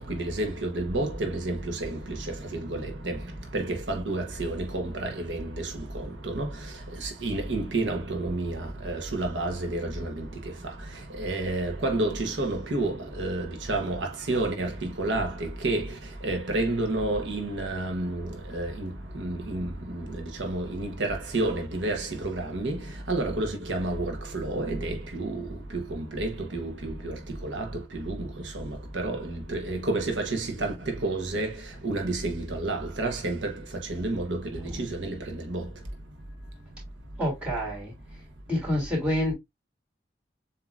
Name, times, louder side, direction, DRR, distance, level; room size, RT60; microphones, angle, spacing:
voice 1, 0.0-2.2 2.5-3.2 3.5-5.7 6.2-6.5 7.0-10.3 11.2-15.9 16.2-19.7 20.4-22.8 23.1-25.4 25.7-27.1 27.4-27.7 28.0-28.2 28.5-28.7 28.9-31.5 31.8-33.5 33.9-35.2 35.5-35.7, right 2 dB, 75° right, 1.0 m, -30 dB
voice 2, 37.2-37.9 38.5-39.3, left 1 dB, 5° right, 2.7 m, -27 dB
7.2 x 2.8 x 2.4 m
head